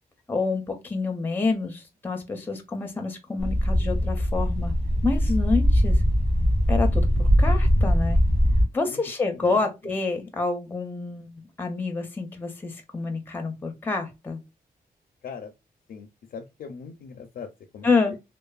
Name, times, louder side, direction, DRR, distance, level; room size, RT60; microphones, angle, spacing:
voice 1, 0.3-4.7 5.0-6.0 6.7-8.2 8.7-14.4 17.8-18.1, left 3 dB, 10° left, 0.5 m, -28 dB
sound 1, 3.4-8.7, equal, 50° right, 1.7 m, -21 dB
voice 2, 15.2-15.5 15.9-18.2, left 6 dB, 70° left, 0.4 m, -41 dB
3.1 x 2.0 x 2.3 m
wide cardioid pair, 165°, 16 cm